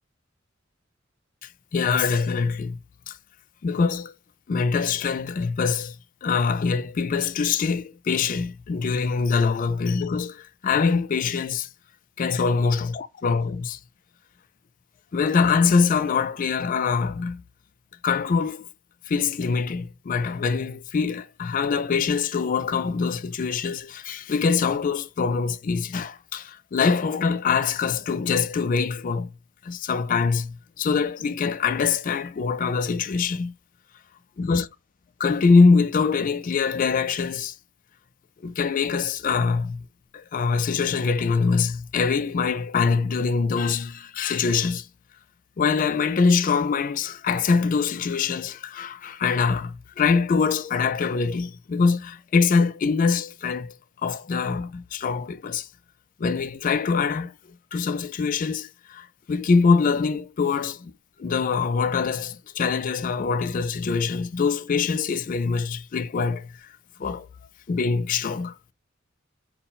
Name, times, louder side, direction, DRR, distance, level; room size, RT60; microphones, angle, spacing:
voice 1, 1.4-2.8 3.1-3.2 3.6-4.1 4.5-6.0 6.2-11.7 12.2-13.8 15.1-17.4 18.0-18.7 19.1-29.3 29.6-33.5 34.4-34.7 35.2-37.5 38.4-39.8 40.1-44.9 45.6-53.7 54.0-55.7 56.2-57.3 57.7-60.9 61.2-66.5 67.0-67.3 67.7-68.5, left 5 dB, 45° left, 0.3 m, -24 dB
4.2 x 2.1 x 3.7 m
head